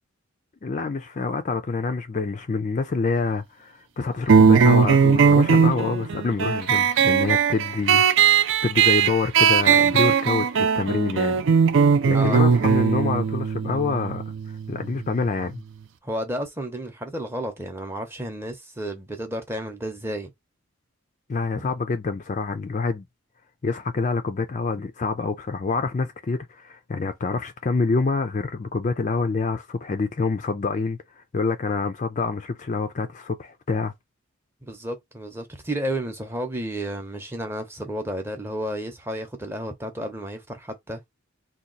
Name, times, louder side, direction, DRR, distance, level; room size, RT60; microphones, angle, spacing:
voice 1, 0.6-11.4 12.1-15.6 21.3-23.1 23.6-33.9, left 4 dB, 35° left, 0.4 m, -27 dB
sound 1, 4.3-15.4, right 6 dB, 60° right, 0.4 m, -19 dB
voice 2, 12.1-12.5 16.0-20.3 21.6-21.8 34.6-41.0, right 1 dB, 10° right, 0.7 m, -32 dB
2.8 x 2.3 x 3.9 m
head